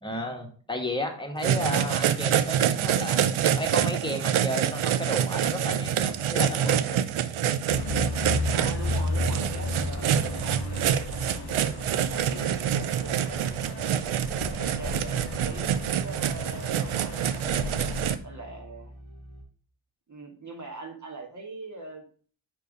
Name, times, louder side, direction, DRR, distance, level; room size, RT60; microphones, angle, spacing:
voice 1, 0.0-7.0, left 1 dB, 10° left, 2 dB, 1.4 m, -33 dB
sound 1, 1.4-18.1, right 9 dB, 85° right, 0.6 m, -26 dB
sound 2, 3.8-19.4, equal, 70° right, 3.1 m, -47 dB
sound 3, 7.7-18.2, left 3 dB, 50° left, 0.9 m, -34 dB
voice 2, 8.5-11.5 12.1-13.9 14.4-17.6 18.2-18.9 20.1-22.0, right 3 dB, 35° right, 3 dB, 1.6 m, -42 dB
5.0 x 4.6 x 5.0 m, 0.43 s
wide cardioid pair, 95°, 47 cm